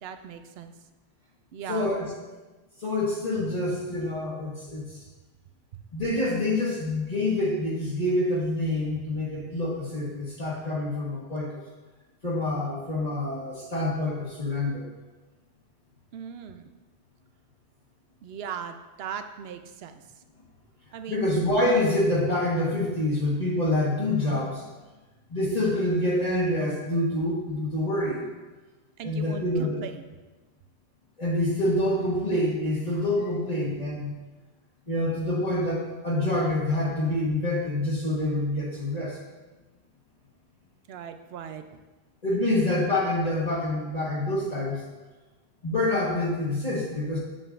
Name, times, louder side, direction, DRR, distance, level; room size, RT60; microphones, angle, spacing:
voice 1, 0.0-0.7 1.5-1.9 16.1-16.7 18.2-20.0 20.9-21.4 29.0-30.0 40.9-41.8, right 7 dB, 75° right, 8 dB, 0.8 m, -38 dB
voice 2, 1.7-2.2 2.8-5.0 5.9-11.6 12.2-14.9 21.1-24.6 25.3-28.2 29.0-29.8 31.2-34.1 34.9-39.2 42.2-44.8 45.6-47.2, left 1 dB, 40° left, -8 dB, 1.4 m, -26 dB
7.7 x 7.6 x 2.5 m, 1.2 s
omnidirectional pair, 1.1 m